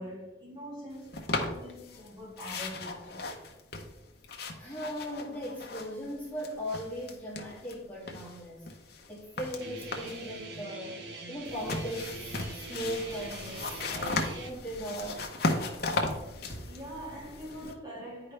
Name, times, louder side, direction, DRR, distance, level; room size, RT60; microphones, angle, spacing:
voice 1, 0.0-3.2 9.3-9.4 16.7-18.3, equal, 20° right, 2.2 m, -43 dB
sound 1, 1.1-2.1 2.4-6.1 6.4-7.8 8.1-10.3 11.4-17.7, left 2 dB, 55° left, 0.9 m, -36 dB
voice 2, 4.6-8.7 9.1-11.0 11.3-15.2, equal, 10° left, 1.7 m, -38 dB
Guitar, 9.6-14.5, right 2 dB, 55° right, 1.0 m, -43 dB
9.9 x 4.8 x 3.3 m
head